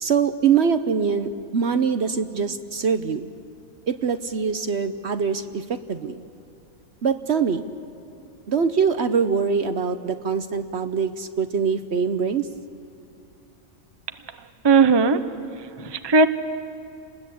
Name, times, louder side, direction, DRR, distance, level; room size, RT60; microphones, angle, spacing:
voice 1, 0.0-3.3 3.9-6.2 7.0-7.7 8.5-12.5, right 6 dB, 55° right, 10 dB, 1.0 m, -23 dB
voice 2, 14.6-15.2 15.8-16.3, right 4 dB, 25° right, 10 dB, 0.8 m, -16 dB
29.5 x 20.5 x 8.5 m, 2.7 s
omnidirectional pair, 1.4 m